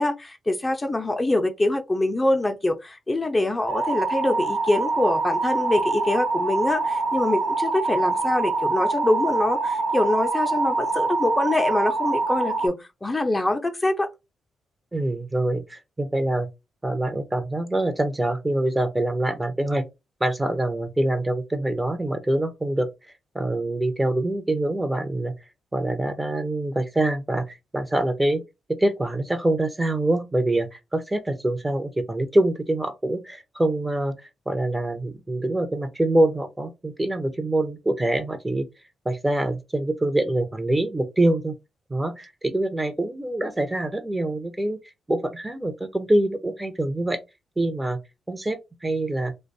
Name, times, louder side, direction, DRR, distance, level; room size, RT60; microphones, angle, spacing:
voice 1, 0.0-14.1, left 2 dB, 25° left, 0.5 m, -24 dB
sound 1, 3.7-12.7, right 3 dB, 75° right, 0.6 m, -25 dB
voice 2, 14.9-16.5 16.8-19.8 20.2-22.9 23.3-25.3 25.7-28.4 28.7-34.2 34.5-38.7 39.0-41.5 41.9-44.8 45.1-47.2 47.6-48.0 48.3-49.3, right 1 dB, 20° right, 0.7 m, -25 dB
2.5 x 2.2 x 2.6 m
supercardioid pair, 50°, 0 cm